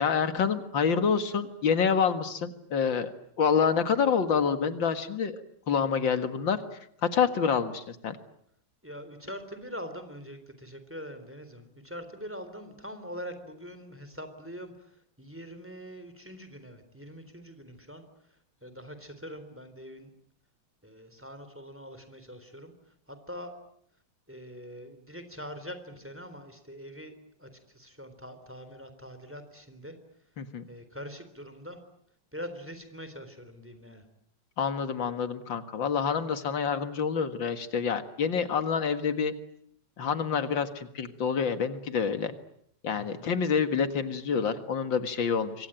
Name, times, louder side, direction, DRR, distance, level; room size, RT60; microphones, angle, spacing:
voice 1, 0.0-3.1 3.4-8.2 30.4-30.7 34.6-39.3 40.0-42.3 42.8-45.7, left 6 dB, 85° left, 10 dB, 2.5 m, -27 dB
voice 2, 8.8-20.1 20.8-23.5 24.3-30.4 30.7-31.8 32.3-34.1 43.0-43.3, equal, 5° right, 9 dB, 3.7 m, -43 dB
27.0 x 24.0 x 8.9 m, 0.68 s
omnidirectional pair, 2.0 m